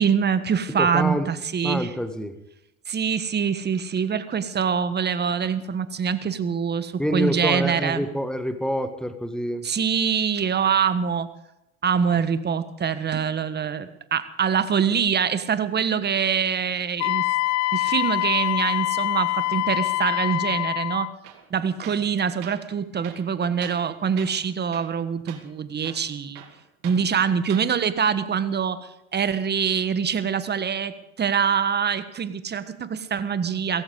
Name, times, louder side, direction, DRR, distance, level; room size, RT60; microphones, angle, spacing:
voice 1, 0.0-1.9 2.9-8.0 9.6-11.3 11.8-17.2 17.7-21.1 21.5-26.4 26.8-33.8, right 7 dB, 25° right, 13 dB, 1.5 m, -24 dB
voice 2, 0.8-1.3 1.6-2.4 7.0-9.7, equal, ahead, 9 dB, 1.8 m, -27 dB
Wind instrument woodwind instrument, 17.0-21.1, left 17 dB, 45° left, 0.5 m, -25 dB
Tools, 21.2-21.5 21.8-22.1 22.4-22.6 23.0-23.9 24.2-24.4 24.7-25.0 25.3-25.4 25.8-27.0 27.4-27.7, right 11 dB, 70° right, 2.7 m, -44 dB
17.0 x 15.5 x 5.3 m, 0.88 s
hypercardioid pair, 90°, 37 cm